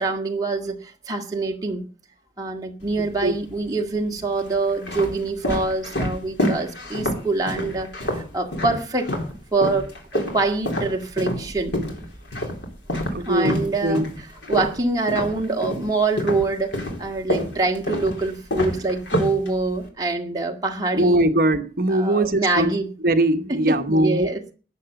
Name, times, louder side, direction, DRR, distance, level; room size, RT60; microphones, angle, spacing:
voice 1, 0.0-1.9 2.4-9.2 9.5-11.8 13.3-14.0 14.5-21.3 21.9-22.9 23.5-24.4, right 3 dB, 20° right, 1.9 m, -25 dB
sound 1, 2.8-3.5 4.2-9.3 9.6-15.9 16.2-19.9, equal, 85° left, 3.9 m, -27 dB
voice 2, 3.0-3.3 13.1-14.1 20.9-22.7 23.0-24.3, right 1 dB, 50° right, 1.1 m, -21 dB
14.0 x 9.5 x 7.0 m
head